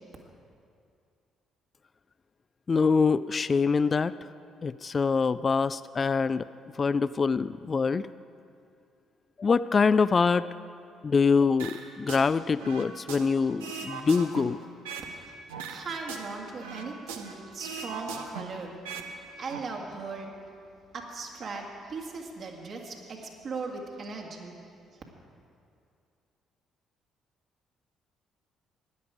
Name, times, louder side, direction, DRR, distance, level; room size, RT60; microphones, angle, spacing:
voice 1, 2.7-4.1 4.6-6.5 6.8-8.1 9.4-10.4 11.0-14.6, left 5 dB, 35° left, 15 dB, 0.3 m, -24 dB
sound 1, 11.6-12.3 12.6-15.1 15.5-17.3 17.6-19.1 19.4-19.6, right 6 dB, 80° right, 0.8 m, -39 dB
voice 2, 15.7-18.7 19.3-20.3 20.9-24.6, right 4 dB, 50° right, 1 dB, 2.0 m, -38 dB
16.0 x 10.5 x 5.0 m, 2.4 s
hypercardioid pair, 45°, 0 cm